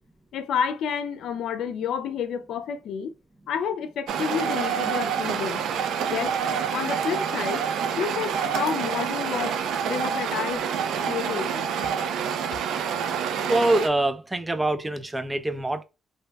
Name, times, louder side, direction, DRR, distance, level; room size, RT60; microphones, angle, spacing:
voice 1, 0.3-3.1 3.5-5.6 6.1-6.3 6.7-7.7 8.0-9.6 9.9-10.7 11.0-11.9, left 7 dB, 75° left, 0.4 m, -30 dB
sound 1, 4.1-13.9, right 7 dB, 80° right, 0.4 m, -27 dB
voice 2, 13.5-15.8, right 2 dB, 15° right, 0.4 m, -24 dB
2.6 x 2.2 x 3.3 m
cardioid pair, 90°, 0 cm